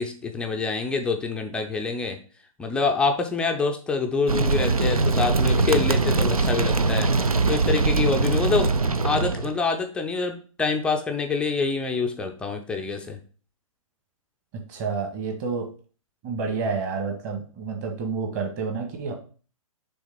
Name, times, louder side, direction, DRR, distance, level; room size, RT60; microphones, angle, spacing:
voice 1, 0.0-2.2 2.6-8.7 9.0-13.2, left 4 dB, 5° left, 3 dB, 0.4 m, -26 dB
sound 1, 4.3-9.5, right 3 dB, 85° right, 0.6 m, -22 dB
voice 2, 14.7-15.7 16.2-19.1, right 5 dB, 30° right, 3 dB, 1.6 m, -29 dB
6.3 x 3.4 x 5.0 m, 0.40 s
figure-of-eight pair, 125°, 18 cm